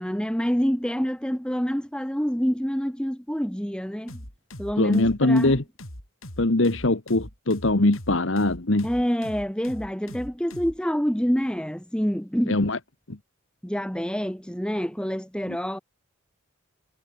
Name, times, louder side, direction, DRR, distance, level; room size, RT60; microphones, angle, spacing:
voice 1, 0.0-4.2 4.6-5.5 8.8-12.6 13.6-15.8, equal, 5° left, 1.5 m, -27 dB
sound 1, 4.1-10.8, left 1 dB, 90° left, 7.3 m, -41 dB
voice 2, 4.8-5.6 6.4-8.9 12.5-12.8 13.1-13.2, left 2 dB, 65° left, 1.5 m, -22 dB
head